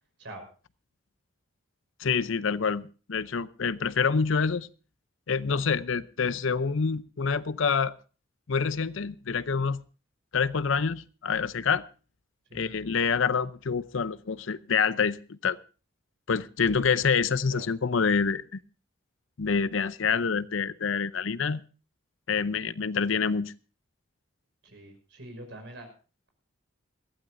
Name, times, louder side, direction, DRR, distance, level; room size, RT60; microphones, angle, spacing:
voice 1, 2.0-4.7 5.3-7.9 8.5-9.8 10.3-11.8 12.5-15.6 16.3-18.4 19.4-21.6 22.3-23.5, left 5 dB, 70° left, 16 dB, 0.6 m, -27 dB
voice 2, 24.6-25.9, right 1 dB, 60° right, 4 dB, 5.8 m, -44 dB
22.0 x 15.5 x 2.6 m, 0.35 s
head